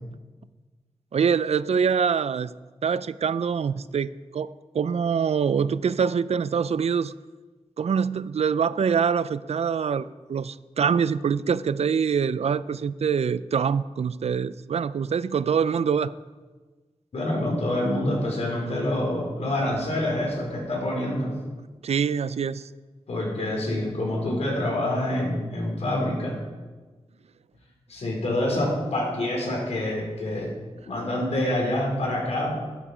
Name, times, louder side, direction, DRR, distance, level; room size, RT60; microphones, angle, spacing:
voice 1, 1.1-2.5 2.8-7.1 7.8-16.1 21.8-22.7, right 6 dB, 70° right, 17 dB, 0.4 m, -25 dB
voice 2, 17.1-21.3 23.1-26.4 27.9-30.5 30.8-32.6, left 1 dB, 75° left, -2 dB, 4.5 m, -26 dB
12.0 x 11.5 x 5.0 m, 1.3 s
wide cardioid pair, 100°, 11 cm